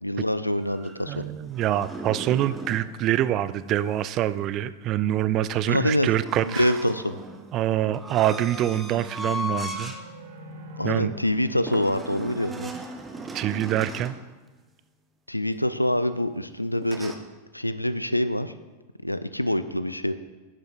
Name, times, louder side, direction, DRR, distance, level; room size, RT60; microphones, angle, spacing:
voice 1, 0.0-1.2 5.7-6.1 6.4-7.2 10.8-12.7 15.3-17.2 17.5-18.5 19.0-20.1, left 1 dB, 85° left, 12 dB, 0.4 m, -25 dB
sound 1, 0.6-2.9 6.2-10.0 10.5-10.7 11.7-14.2 16.8-17.2, equal, 15° right, 0.8 m, -37 dB
voice 2, 1.1-6.7 7.5-9.9 10.8-11.1 13.3-14.2, right 12 dB, 35° right, 15 dB, 0.3 m, -25 dB
sound 2, 8.0-13.4, right 2 dB, 55° right, 1.6 m, -45 dB
11.5 x 7.7 x 2.5 m, 1.2 s
figure-of-eight pair, 90°, 0 cm